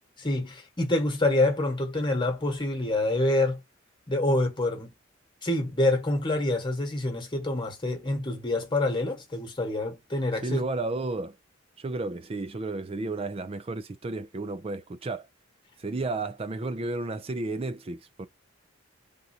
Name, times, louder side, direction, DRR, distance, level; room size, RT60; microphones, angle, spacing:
voice 1, 0.2-3.6 4.1-4.9 5.4-10.6, left 2 dB, 25° left, 1.3 m, -26 dB
voice 2, 10.4-11.4 11.8-15.3 15.8-18.3, right 2 dB, 30° right, 0.4 m, -32 dB
3.6 x 2.6 x 2.7 m
head